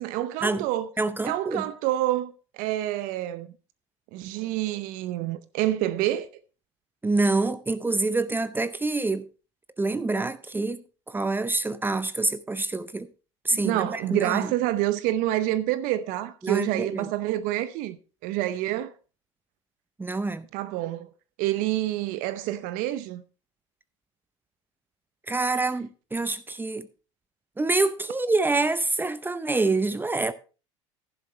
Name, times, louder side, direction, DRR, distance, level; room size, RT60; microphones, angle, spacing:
voice 1, 0.0-0.9 1.2-3.5 4.1-6.3 13.5-18.0 18.2-18.9 20.5-21.1 21.4-23.2, right 14 dB, 60° right, 0.7 m, -27 dB
voice 2, 1.0-1.6 7.0-9.3 9.8-13.1 13.4-14.5 16.4-17.1 20.0-20.5 25.3-26.9 27.6-30.3, right 3 dB, 10° right, 0.7 m, -26 dB
11.0 x 11.0 x 3.2 m
hypercardioid pair, 80°, 16 cm